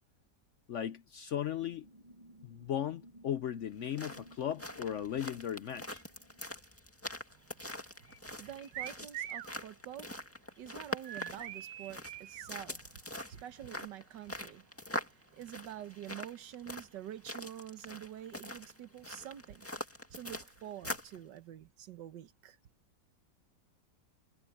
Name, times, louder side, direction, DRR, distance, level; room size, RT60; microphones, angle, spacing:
voice 1, 0.7-1.8 2.4-6.0, left 10 dB, 75° left, 0.6 m, -37 dB
sound 1, 1.6-6.6, right 1 dB, 25° right, 1.4 m, -58 dB
sound 2, 3.7-21.2, left 1 dB, 10° left, 1.8 m, -44 dB
voice 2, 7.3-19.7 20.1-22.6, right 11 dB, 75° right, 1.7 m, -48 dB
sound 3, 8.7-9.5 11.0-12.5, right 10 dB, 60° right, 1.1 m, -42 dB
omnidirectional pair, 1.9 m